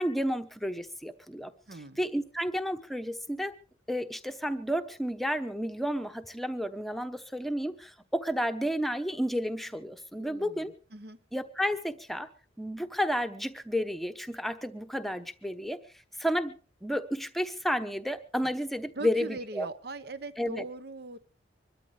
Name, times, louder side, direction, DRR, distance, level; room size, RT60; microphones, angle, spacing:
voice 1, 0.0-3.6 3.9-10.7 11.3-12.3 12.6-15.8 16.2-16.5 16.8-19.7 20.4-20.6, equal, ahead, 8 dB, 0.9 m, -31 dB
voice 2, 1.7-2.0 10.2-11.2 18.9-21.2, right 2 dB, 60° right, 13 dB, 1.0 m, -40 dB
25.0 x 13.0 x 3.3 m, 0.38 s
head